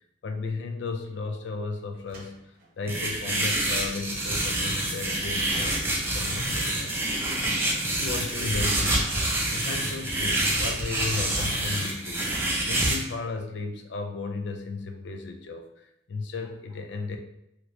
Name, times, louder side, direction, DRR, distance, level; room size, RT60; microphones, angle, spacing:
voice 1, 0.2-2.4 2.8-7.0 8.0-9.1 9.5-12.2 12.7-15.6 16.1-17.2, left 4 dB, 65° left, 5 dB, 0.4 m, -34 dB
sound 1, 1.9-2.8 3.7-3.8 4.2-4.5 5.2-5.9 8.4-9.2 9.8-10.0 11.1-11.8, right 1 dB, 50° right, 0.7 m, -45 dB
sound 2, 2.9-13.0, right 1 dB, 15° right, 0.5 m, -27 dB
3.1 x 2.9 x 2.6 m, 0.80 s
head